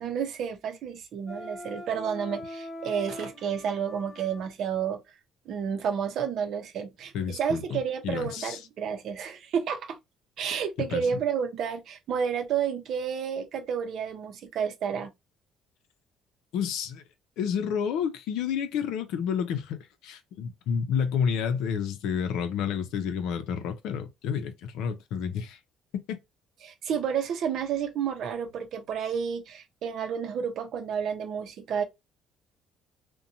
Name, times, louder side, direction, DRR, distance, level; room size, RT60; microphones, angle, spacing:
voice 1, 0.0-5.0 5.5-10.0 10.4-15.1 26.6-31.8, right 7 dB, 65° right, 0.6 m, -30 dB
Wind instrument woodwind instrument, 1.3-4.5, left 1 dB, 20° left, 0.8 m, -41 dB
voice 2, 7.1-8.7 10.9-11.0 16.5-17.0 17.4-19.8 20.0-25.6 26.1-26.2, left 7 dB, 80° left, 0.5 m, -30 dB
2.6 x 2.2 x 2.7 m
cardioid pair, 105°, 0 cm